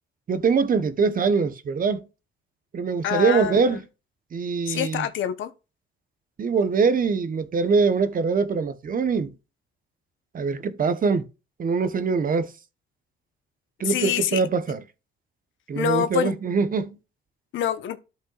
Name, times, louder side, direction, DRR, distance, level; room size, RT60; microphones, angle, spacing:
voice 1, 0.3-2.0 2.7-3.8 4.3-5.1 6.4-9.3 10.3-11.3 11.6-12.5 13.8-14.8 15.7-16.9, right 5 dB, 45° right, 1.0 m, -23 dB
voice 2, 3.0-3.8 4.7-5.5 13.8-14.4 15.7-16.4 17.5-18.0, left 10 dB, 75° left, 1.0 m, -26 dB
12.5 x 5.3 x 2.4 m
cardioid pair, 90°, 20 cm